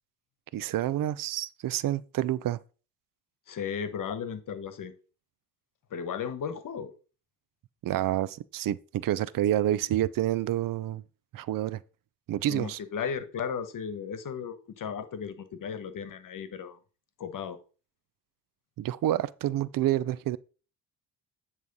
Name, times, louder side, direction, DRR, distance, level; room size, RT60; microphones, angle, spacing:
voice 1, 0.5-2.6 7.8-11.0 11.3-11.8 12.3-12.8 18.8-20.4, right 13 dB, 60° right, 0.6 m, -28 dB
voice 2, 3.5-4.9 5.9-6.9 12.5-16.8 17.2-17.6, left 7 dB, 55° left, 1.3 m, -35 dB
9.4 x 3.2 x 5.3 m
supercardioid pair, 60°, 37 cm